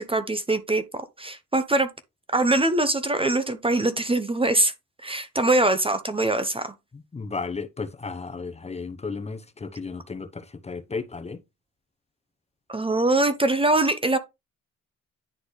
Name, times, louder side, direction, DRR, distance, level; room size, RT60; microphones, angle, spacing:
voice 1, 0.0-1.9 2.3-4.7 5.0-6.7 12.7-14.2, right 2 dB, 20° right, 0.8 m, -23 dB
voice 2, 7.1-11.4, left 4 dB, 20° left, 0.9 m, -34 dB
10.0 x 4.0 x 3.2 m
cardioid pair, 90°, 30 cm